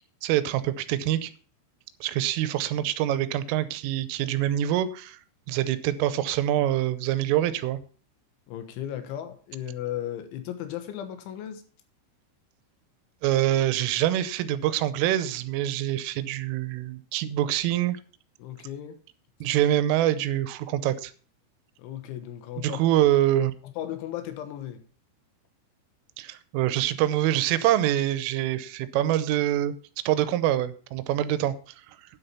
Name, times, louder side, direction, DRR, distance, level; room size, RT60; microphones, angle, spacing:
voice 1, 0.2-1.3 2.0-5.2 5.5-7.8 13.2-18.0 19.4-21.1 22.6-23.5 26.2-29.7 30.1-31.5 31.9-32.0, right 12 dB, 90° right, 3.4 m, -25 dB
voice 2, 8.5-11.7 18.4-19.0 21.8-22.8 23.6-24.8, left 11 dB, 75° left, 3.5 m, -35 dB
9.8 x 7.9 x 5.6 m
omnidirectional pair, 5.7 m